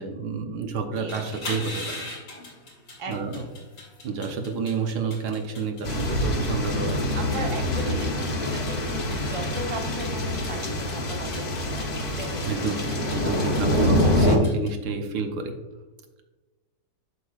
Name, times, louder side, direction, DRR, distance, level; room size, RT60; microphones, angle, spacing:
voice 1, 0.0-2.0 3.1-3.4 4.0-7.5 7.9-8.1 12.4-15.5, right 5 dB, 70° right, 4 dB, 1.3 m, -29 dB
sound 1, 0.9-14.7, left 2 dB, 85° left, 3.1 m, -41 dB
voice 2, 1.0-1.4 3.0-3.7 7.1-13.5, right 2 dB, 25° right, 1 dB, 0.8 m, -38 dB
sound 2, 5.8-14.4, left 1 dB, 40° left, 0.9 m, -25 dB
7.6 x 6.2 x 2.4 m, 1.2 s
omnidirectional pair, 1.9 m